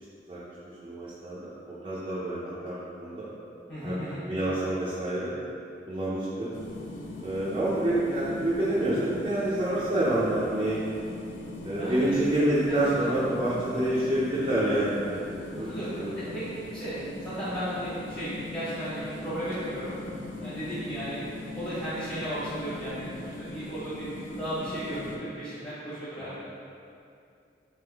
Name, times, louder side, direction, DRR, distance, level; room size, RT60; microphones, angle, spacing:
voice 1, 0.8-3.3 3.8-5.3 5.9-6.5 7.2-10.8 11.6-15.2 15.6-16.1 20.4-20.5 26.2-26.4, right 1 dB, 30° right, -11 dB, 0.6 m, -28 dB
voice 2, 3.7-4.2 11.8-12.2 12.6-13.1 15.7-16.5 16.7-17.0 17.2-20.0 20.4-21.2 21.5-26.4, equal, 25° left, -13 dB, 1.1 m, -35 dB
sound 1, 6.5-25.2, left 1 dB, 45° left, 0.4 m, -40 dB
3.5 x 3.2 x 3.4 m, 2.5 s
head